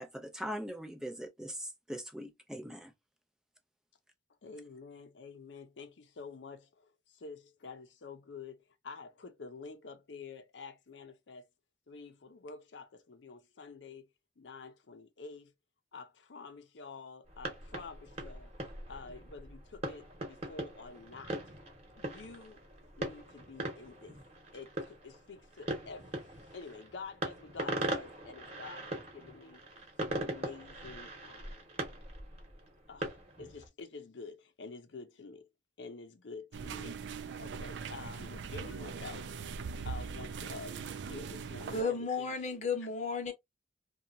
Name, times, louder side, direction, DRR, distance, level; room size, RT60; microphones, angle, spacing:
voice 1, 0.0-2.9, equal, 5° right, 0.4 m, -41 dB
voice 2, 4.4-11.5 11.9-14.1 14.4-15.5 15.9-18.5 18.9-21.4 22.0-22.6 23.0-24.2 24.5-29.6 30.0-31.6 32.9-35.5 35.8-39.3 39.8-42.3, left 4 dB, 90° left, 0.6 m, -48 dB
sound 1, 17.3-33.7, right 1 dB, 35° right, 1.1 m, -41 dB
sound 2, 36.5-41.8, right 5 dB, 80° right, 0.4 m, -41 dB
voice 3, 41.7-43.3, left 4 dB, 40° left, 0.9 m, -33 dB
2.9 x 2.3 x 2.5 m
head